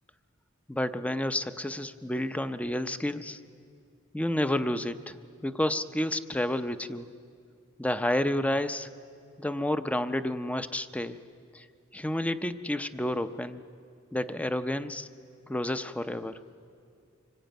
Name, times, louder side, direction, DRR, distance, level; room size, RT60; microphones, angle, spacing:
voice 1, 0.7-3.4 4.1-5.2 5.4-7.1 7.8-8.9 9.4-11.2 11.5-11.6 11.9-13.6 14.1-15.1 15.5-16.4, left 1 dB, 5° left, 11 dB, 0.6 m, -30 dB
25.0 x 20.5 x 9.0 m, 2.4 s
head